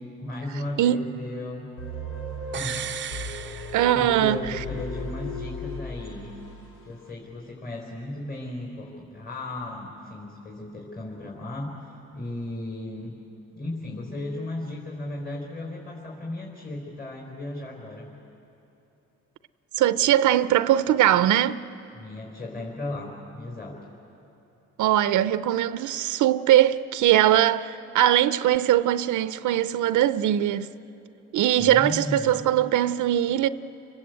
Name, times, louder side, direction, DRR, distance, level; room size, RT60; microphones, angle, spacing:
voice 1, 0.0-1.7 2.4-2.9 4.0-6.4 6.8-13.2 13.5-18.1 21.9-23.9 31.6-32.4, left 1 dB, 30° left, 4.7 m, -35 dB
sound 1, 1.8-6.8, left 1 dB, 90° left, 2.8 m, -36 dB
sound 2, 2.5-4.5 4.8-4.9, right 9 dB, 40° right, 0.6 m, -36 dB
voice 2, 3.7-4.6 19.8-21.6 24.8-30.7 31.3-33.5, right 12 dB, 80° right, 0.7 m, -21 dB
30.0 x 21.5 x 8.2 m
cardioid pair, 90°, 30 cm